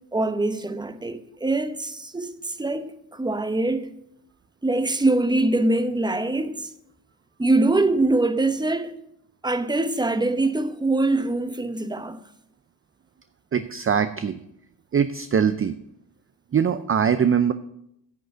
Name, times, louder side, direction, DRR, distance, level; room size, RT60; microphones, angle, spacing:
voice 1, 0.1-3.9 4.6-6.7 7.4-8.9 9.4-12.2, right 2 dB, 10° right, 0.8 m, -23 dB
voice 2, 13.5-14.4 14.9-15.8 16.5-17.5, right 7 dB, 30° right, 0.5 m, -22 dB
9.3 x 6.6 x 7.9 m
cardioid pair, 80°, 43 cm